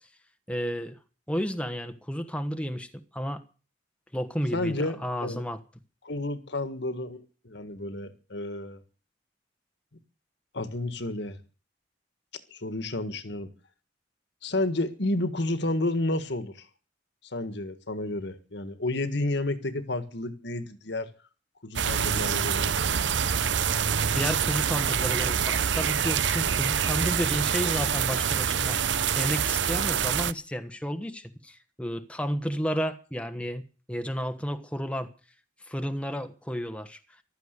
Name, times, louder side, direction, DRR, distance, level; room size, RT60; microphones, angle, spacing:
voice 1, 0.5-1.0 1.3-2.9 3.1-3.4 4.1-5.6 24.1-35.1 35.7-37.0, equal, 5° left, 1.3 m, -32 dB
voice 2, 4.5-5.4 6.0-8.8 10.5-11.4 12.5-13.5 14.4-16.7 17.2-21.1 21.6-23.0, left 2 dB, 65° left, 1.7 m, -31 dB
sound 1, 21.8-30.3, right 7 dB, 70° right, 0.8 m, -26 dB
15.0 x 13.0 x 6.7 m
head